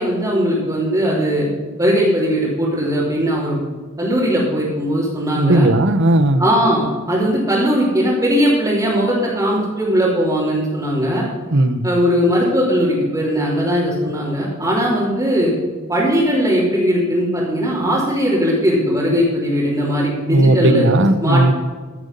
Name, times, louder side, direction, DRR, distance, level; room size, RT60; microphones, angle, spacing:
voice 1, 0.0-1.5 1.8-3.6 4.0-5.7 6.4-11.2 11.8-15.5 15.9-20.9 21.2-21.5, equal, 15° right, -9 dB, 3.3 m, -18 dB
voice 2, 5.3-6.4 11.5-11.9 20.3-21.5, right 1 dB, 60° right, 11 dB, 1.0 m, -15 dB
15.5 x 8.0 x 5.5 m, 1.5 s
head